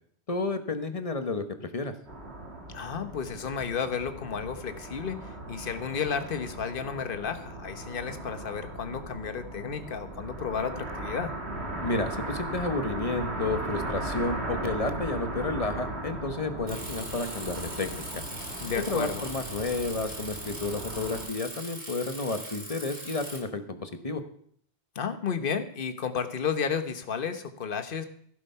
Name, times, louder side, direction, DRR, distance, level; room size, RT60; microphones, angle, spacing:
voice 1, 0.3-1.9 11.8-18.2 18.7-24.2, left 3 dB, 35° left, 9 dB, 1.1 m, -31 dB
sound 1, 2.1-21.3, right 2 dB, 70° right, 2.4 m, -37 dB
voice 2, 2.7-11.3 18.6-19.2 24.9-28.0, left 6 dB, 55° left, 9 dB, 1.2 m, -32 dB
Bicycle, 16.7-23.4, right 1 dB, 40° right, 3.5 m, -40 dB
15.0 x 8.4 x 5.7 m, 0.64 s
omnidirectional pair, 1.1 m